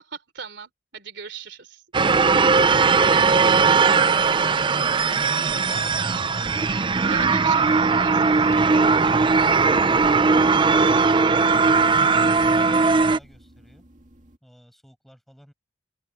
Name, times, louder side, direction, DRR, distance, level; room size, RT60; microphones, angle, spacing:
voice 1, 0.0-1.8 5.1-5.5 7.0-8.8 10.9-11.2, right 6 dB, 70° right, 3.6 m, -40 dB
sound 1, 1.9-13.2, right 4 dB, 25° right, 0.5 m, -19 dB
voice 2, 2.3-3.9 4.8-5.6 9.7-10.5 10.8-11.6 12.1-13.8 14.4-15.5, equal, ahead, 7.3 m, -52 dB
sound 2, 7.4-14.4, right 1 dB, 45° right, 2.4 m, -49 dB
open air
head